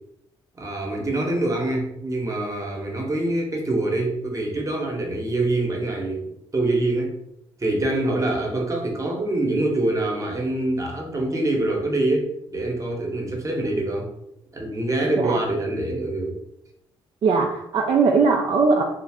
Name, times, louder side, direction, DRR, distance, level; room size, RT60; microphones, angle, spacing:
voice 1, 0.6-6.3 6.5-7.2 7.6-14.1 14.5-16.4, right 2 dB, 30° right, 1 dB, 0.9 m, -25 dB
voice 2, 17.2-18.8, right 4 dB, 55° right, 0 dB, 0.4 m, -19 dB
2.5 x 2.0 x 3.4 m, 0.79 s
supercardioid pair, 55°, 10 cm